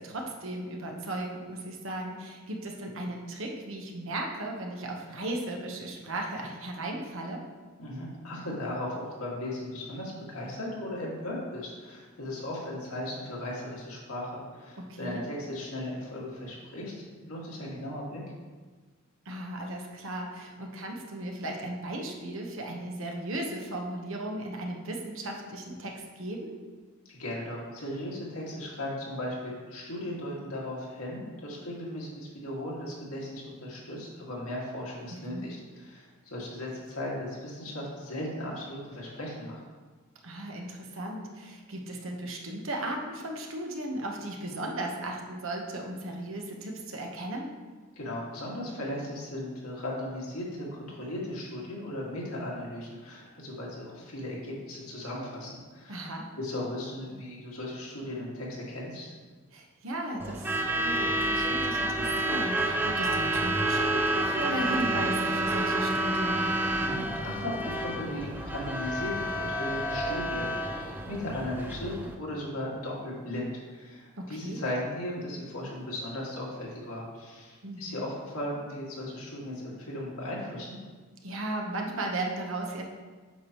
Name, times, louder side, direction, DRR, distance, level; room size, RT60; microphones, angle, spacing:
voice 1, 0.0-7.4 14.8-15.2 19.2-26.6 35.3-35.5 40.2-47.5 55.9-56.3 59.5-66.5 74.2-74.6 77.6-78.0 81.2-82.8, right 1 dB, 65° right, 1 dB, 1.1 m, -36 dB
voice 2, 7.8-18.2 27.1-39.6 48.0-59.1 66.8-80.8, left 1 dB, 85° left, -4 dB, 2.1 m, -37 dB
Truck / Alarm, 60.2-72.1, right 1 dB, 10° right, 0.4 m, -29 dB
8.2 x 6.3 x 3.0 m, 1.4 s
head